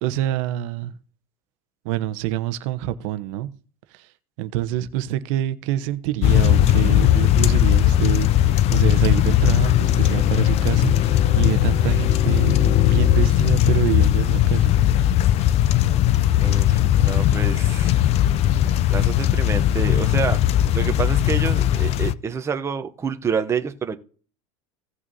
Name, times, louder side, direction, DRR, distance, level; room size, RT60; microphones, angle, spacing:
voice 1, 0.0-0.9 1.8-3.5 3.9-4.1 4.4-14.7, right 13 dB, 60° right, 0.9 m, -26 dB
sound 1, 6.2-22.1, left 12 dB, 35° left, 0.5 m, -18 dB
voice 2, 16.4-18.0 18.6-24.0, right 6 dB, 15° right, 0.7 m, -28 dB
17.0 x 6.2 x 2.7 m
supercardioid pair, 130°, 18 cm